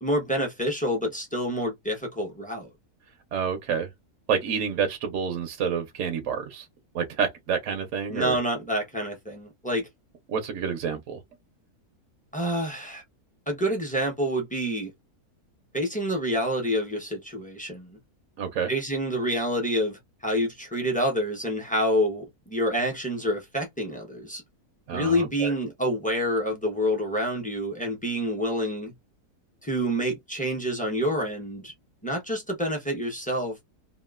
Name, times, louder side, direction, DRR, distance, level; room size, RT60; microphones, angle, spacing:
voice 1, 0.0-2.7 8.1-9.9 12.3-13.0 13.5-14.9 15.7-18.0 18.7-24.4 24.9-28.9 29.6-31.7 32.0-33.6, equal, 10° left, 0.5 m, -27 dB
voice 2, 3.3-3.9 4.3-6.7 6.9-8.4 10.3-11.2 18.4-18.7 24.9-25.5, right 7 dB, 65° right, 0.9 m, -28 dB
2.9 x 2.4 x 2.3 m
omnidirectional pair, 1.7 m